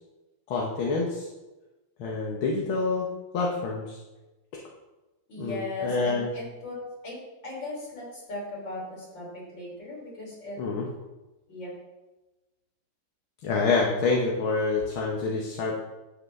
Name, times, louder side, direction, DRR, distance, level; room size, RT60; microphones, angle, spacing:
voice 1, 0.5-1.3 2.0-3.1 3.3-4.0 5.4-6.3 10.6-10.9 13.4-15.7, left 3 dB, 80° left, -2 dB, 1.9 m, -27 dB
voice 2, 5.3-7.2 7.4-10.6 11.5-11.7, left 2 dB, 60° left, -4 dB, 4.0 m, -37 dB
11.0 x 7.9 x 3.3 m, 1.1 s
omnidirectional pair, 2.2 m